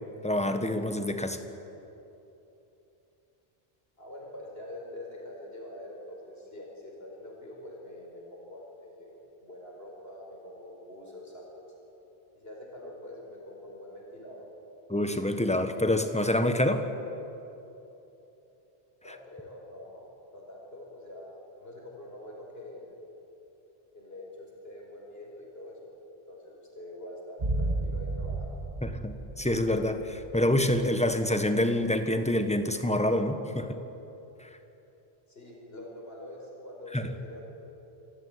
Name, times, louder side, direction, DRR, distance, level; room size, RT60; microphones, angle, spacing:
voice 1, 0.2-1.4 14.9-16.8 28.8-33.7 34.4-34.5 36.9-37.1, left 1 dB, 5° left, 7 dB, 1.4 m, -27 dB
voice 2, 4.0-11.7 12.3-14.5 19.0-20.0 20.3-22.9 23.9-25.8 26.3-28.5 35.3-37.4, left 1 dB, 75° left, -2 dB, 5.5 m, -45 dB
sound 1, 27.4-31.6 31.9-32.0, right 2 dB, 40° right, 1.6 m, -34 dB
27.0 x 15.5 x 9.7 m, 3.0 s
omnidirectional pair, 1.0 m